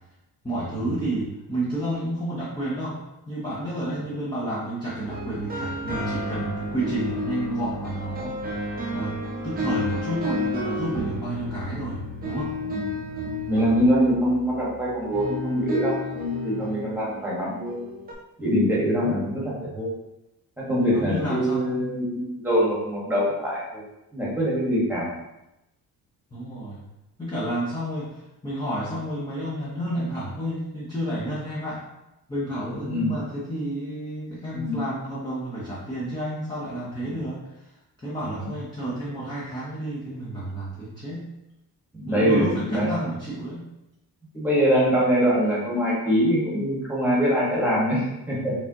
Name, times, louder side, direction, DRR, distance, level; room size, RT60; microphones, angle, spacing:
voice 1, 0.4-3.0 3.3-9.2 9.4-12.5 20.8-21.8 26.3-26.8 27.2-31.9 32.3-37.7 38.0-41.3 42.1-43.7, right 1 dB, 10° left, -8 dB, 0.7 m, -31 dB
sound 1, 5.1-18.1, left 1 dB, 25° right, 0.6 m, -32 dB
voice 2, 13.2-17.8 18.4-19.9 20.6-23.8 24.1-25.1 32.8-33.2 34.5-34.8 37.0-37.1 38.4-38.5 41.9-42.9 44.3-48.5, equal, 5° right, -6 dB, 1.3 m, -24 dB
4.9 x 3.5 x 2.8 m, 0.92 s
cardioid pair, 175°, 40 cm